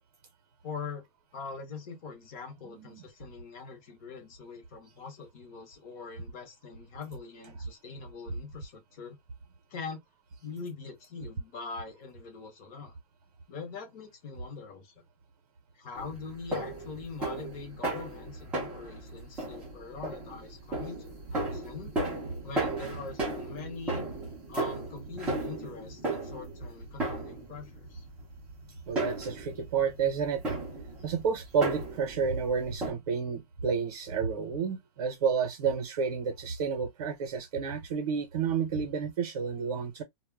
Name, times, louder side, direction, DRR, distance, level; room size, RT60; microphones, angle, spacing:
voice 1, 0.6-1.1 1.3-9.2 9.7-10.0 10.4-12.9 13.5-14.9 15.7-21.0 21.3-21.9 22.4-24.0 24.5-28.1, left 4 dB, 25° left, 0.7 m, -43 dB
voice 2, 2.6-3.0 28.9-30.4 31.0-40.0, right 6 dB, 55° right, 0.7 m, -30 dB
sound 1, 16.0-32.9, right 2 dB, 5° right, 0.4 m, -36 dB
2.1 x 2.1 x 3.3 m
supercardioid pair, 180°, 19 cm